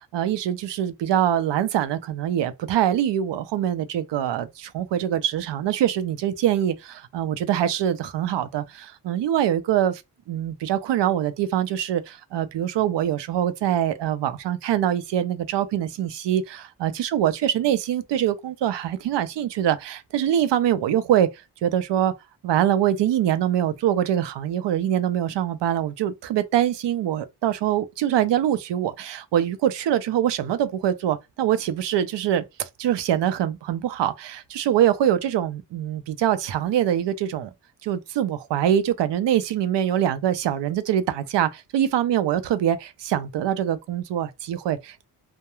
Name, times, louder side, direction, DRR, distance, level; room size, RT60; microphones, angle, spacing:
voice 1, 0.1-10.0 10.3-21.3 21.6-22.1 22.4-37.5 37.8-45.0, right 10 dB, 90° right, 0.5 m, -24 dB
2.3 x 2.2 x 2.9 m
wide cardioid pair, 95°, 41 cm